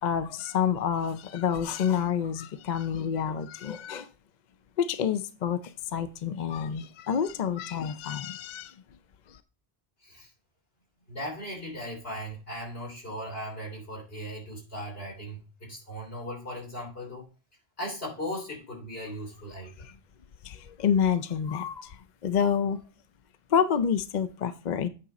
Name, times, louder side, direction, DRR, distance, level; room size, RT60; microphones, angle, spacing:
voice 1, 0.0-4.1 4.8-8.8 9.3-9.4 19.8-20.0 20.4-22.8 23.5-24.9, left 8 dB, 55° left, 0.6 m, -28 dB
voice 2, 11.1-17.3 17.8-19.9, equal, 70° left, 3.5 m, -38 dB
8.4 x 5.1 x 4.1 m
omnidirectional pair, 1.0 m